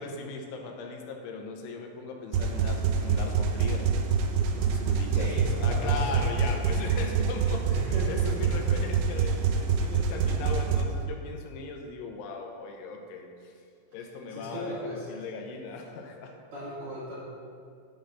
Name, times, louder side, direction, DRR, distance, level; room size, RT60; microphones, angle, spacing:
voice 1, 0.0-3.9 4.5-13.3 13.9-16.3, left 4 dB, 85° left, 2 dB, 3.1 m, -38 dB
sound 1, 2.3-10.8, right 6 dB, 80° right, 2.6 m, -26 dB
voice 2, 5.1-6.3 7.7-8.6 14.3-15.2 16.5-17.3, equal, 55° right, -9 dB, 2.4 m, -37 dB
11.5 x 3.8 x 6.7 m, 2.2 s
omnidirectional pair, 5.5 m